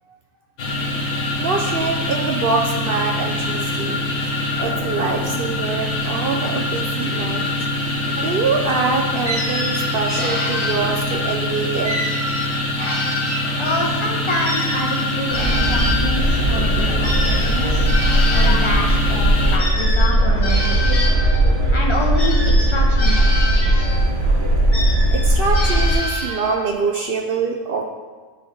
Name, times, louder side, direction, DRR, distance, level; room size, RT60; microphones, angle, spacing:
sound 1, 0.6-19.6, left 1 dB, 80° left, 1.4 m, -24 dB
voice 1, 1.4-4.1 4.6-7.5 8.1-12.1 19.8-19.9 21.6-21.7 25.1-27.8, right 4 dB, 60° right, 1 dB, 0.6 m, -24 dB
sound 2, 9.2-11.3 11.8-13.9 14.4-18.8 19.6-21.5 22.2-24.1 24.7-26.7, left 1 dB, 60° left, 2.2 m, -27 dB
voice 2, 13.6-17.9 18.3-21.1 21.7-23.9, left 1 dB, 25° left, -1 dB, 0.9 m, -27 dB
sound 3, 15.3-25.9, right 1 dB, 40° right, 1.2 m, -18 dB
9.9 x 3.4 x 3.9 m, 1.4 s
omnidirectional pair, 1.4 m